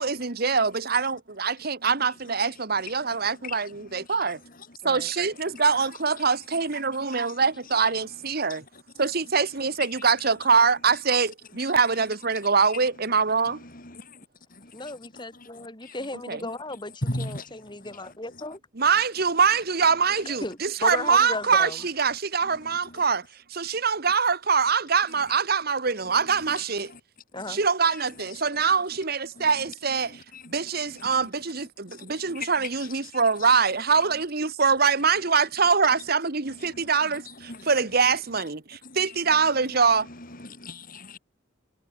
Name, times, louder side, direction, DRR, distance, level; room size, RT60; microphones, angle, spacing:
voice 1, 0.0-4.4 4.8-8.6 9.0-13.6 16.3-16.4 18.8-23.2 23.5-26.9 27.5-30.2 30.5-40.1, right 5 dB, 55° right, 1.5 m, -24 dB
voice 2, 13.7-14.2 14.6-14.7 15.9-16.0 17.0-17.5 29.4-29.5 30.3-31.1 32.0-32.5 33.1-33.2 36.7-36.9 37.5-37.7 38.8-39.0 40.4-41.2, left 1 dB, 45° left, 7.1 m, -36 dB
voice 3, 14.7-18.6 20.2-21.8 27.3-27.6, left 2 dB, 25° left, 5.9 m, -35 dB
head